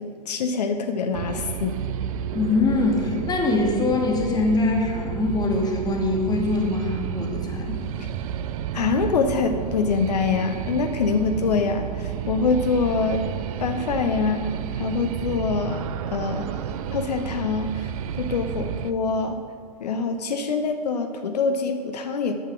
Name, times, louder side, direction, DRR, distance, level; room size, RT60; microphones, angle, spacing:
voice 1, 0.0-1.8 8.7-13.3 13.6-14.5 14.8-16.6 16.9-19.4 19.8-22.3, left 4 dB, 75° left, 6 dB, 0.7 m, -25 dB
sound 1, 1.1-18.9, right 9 dB, 55° right, 0.5 m, -31 dB
voice 2, 2.3-7.9, left 3 dB, 20° left, 1 dB, 1.5 m, -23 dB
9.2 x 5.7 x 6.0 m, 2.1 s
hypercardioid pair, 105°, 21 cm